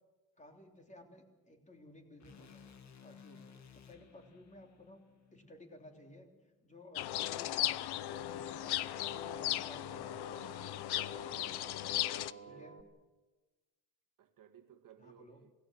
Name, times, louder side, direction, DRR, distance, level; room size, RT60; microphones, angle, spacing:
voice 1, 0.4-2.7 3.0-3.4 3.7-5.0 5.3-8.6 9.0-10.2 12.4-12.8 15.0-15.4, left 1 dB, 20° left, 3.3 m, -56 dB
sound 1, 2.2-6.4, left 7 dB, 45° left, 1.9 m, -58 dB
sound 2, 7.0-12.3, left 14 dB, 80° left, 0.8 m, -37 dB
sound 3, 7.8-12.8, right 5 dB, 40° right, 2.8 m, -53 dB
voice 2, 11.9-12.8 14.2-15.5, right 9 dB, 55° right, 1.9 m, -59 dB
27.5 x 18.0 x 7.6 m
cardioid pair, 150°, 38 cm